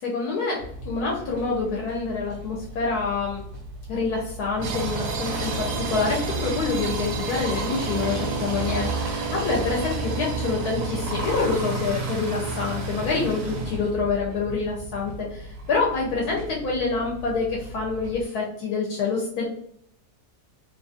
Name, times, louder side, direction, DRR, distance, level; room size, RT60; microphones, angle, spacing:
voice 1, 0.0-3.4 3.9-19.5, left 4 dB, 80° left, -2 dB, 1.1 m, -27 dB
sound 1, 0.6-18.2, right 3 dB, 80° right, 1.2 m, -31 dB
2.8 x 2.4 x 2.5 m, 0.69 s
omnidirectional pair, 1.7 m